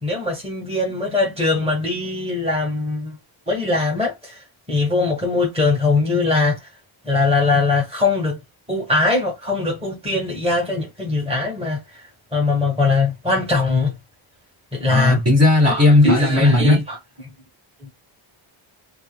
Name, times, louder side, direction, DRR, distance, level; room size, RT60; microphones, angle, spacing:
voice 1, 0.0-3.2 3.5-4.4 4.7-6.6 7.0-8.4 8.7-12.0 12.3-13.9 14.7-15.3 15.6-17.0, left 3 dB, 10° right, 1.8 m, -21 dB
voice 2, 14.9-16.8, left 2 dB, 30° right, 2.1 m, -15 dB
4.5 x 2.2 x 2.3 m
cardioid pair, 95°, 50 cm